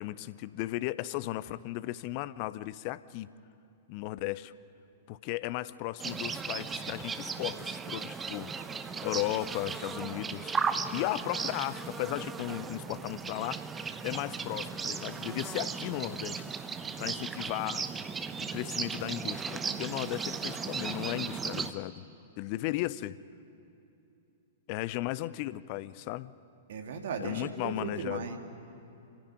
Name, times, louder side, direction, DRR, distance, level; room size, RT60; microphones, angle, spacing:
voice 1, 0.0-3.3 3.9-4.5 5.1-10.5 10.9-13.6 14.0-16.5 17.0-17.9 18.5-22.0 22.4-23.2 24.7-26.3 27.2-28.2, left 17 dB, 40° left, 18 dB, 0.6 m, -35 dB
sound 1, 6.0-21.7, right 5 dB, 15° right, 0.9 m, -36 dB
voice 2, 26.7-28.4, right 5 dB, 55° right, 5 dB, 2.2 m, -36 dB
26.5 x 16.5 x 9.0 m, 2.9 s
figure-of-eight pair, 105°, 0 cm